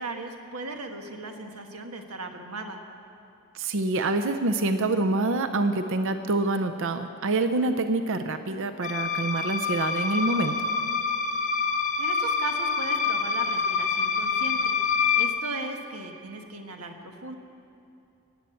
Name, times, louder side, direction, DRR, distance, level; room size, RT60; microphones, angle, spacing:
voice 1, 0.0-2.8 11.6-11.7 12.0-14.8 15.1-17.4, right 2 dB, 90° right, 4 dB, 1.5 m, -37 dB
voice 2, 3.5-10.7, right 2 dB, 60° right, 8 dB, 0.6 m, -26 dB
sound 1, 8.8-15.3, left 5 dB, 35° left, 0.8 m, -26 dB
18.5 x 8.3 x 7.8 m, 2.8 s
head